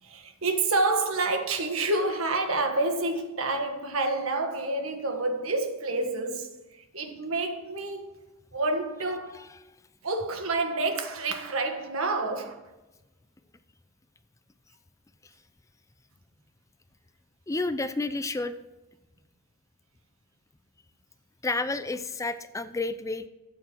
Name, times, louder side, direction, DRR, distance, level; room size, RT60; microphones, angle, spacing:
voice 1, 0.0-8.2 8.5-9.4 10.0-12.7, right 2 dB, 80° right, 1.6 m, -28 dB
voice 2, 17.5-18.5 21.4-23.3, left 3 dB, 15° left, 0.5 m, -30 dB
13.0 x 8.3 x 4.5 m
head